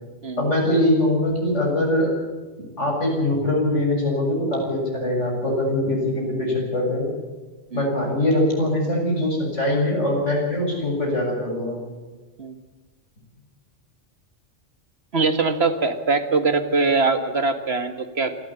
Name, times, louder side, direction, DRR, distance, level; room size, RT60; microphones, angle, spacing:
voice 1, 0.4-2.1 2.8-7.1 7.7-11.8, left 1 dB, 80° left, -1 dB, 7.7 m, -22 dB
voice 2, 15.1-18.4, right 3 dB, 60° right, 9 dB, 1.9 m, -22 dB
27.5 x 13.0 x 8.7 m, 1.3 s
omnidirectional pair, 1.2 m